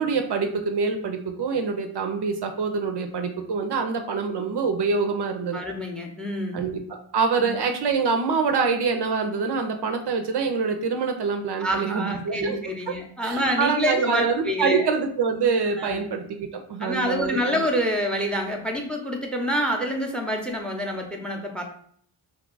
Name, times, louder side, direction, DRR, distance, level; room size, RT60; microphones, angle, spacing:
voice 1, 0.0-5.6 6.5-12.6 12.9-13.0 13.2-17.7, right 5 dB, 55° right, 4 dB, 0.5 m, -25 dB
voice 2, 5.5-6.6 7.4-7.5 11.6-14.9 15.8-16.0 16.8-21.6, equal, ahead, 3 dB, 0.6 m, -27 dB
2.8 x 2.3 x 3.8 m, 0.62 s
cardioid pair, 50°, 49 cm